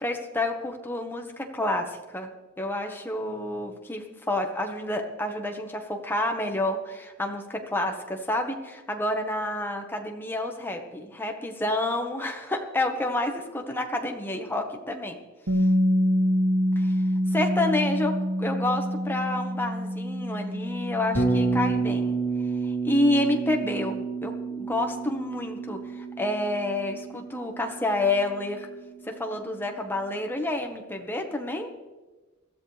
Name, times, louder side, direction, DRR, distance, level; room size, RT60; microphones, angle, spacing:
voice 1, 0.0-2.3 2.6-15.2 16.8-17.0 17.3-22.2 22.6-28.7 29.0-31.7, left 1 dB, 10° left, 3 dB, 1.4 m, -29 dB
Bass guitar, 15.5-21.7, equal, 70° right, 1.8 m, -26 dB
Bass guitar 2, 21.1-29.2, right 4 dB, 80° left, 2.8 m, -30 dB
21.5 x 14.0 x 3.4 m, 1.2 s
head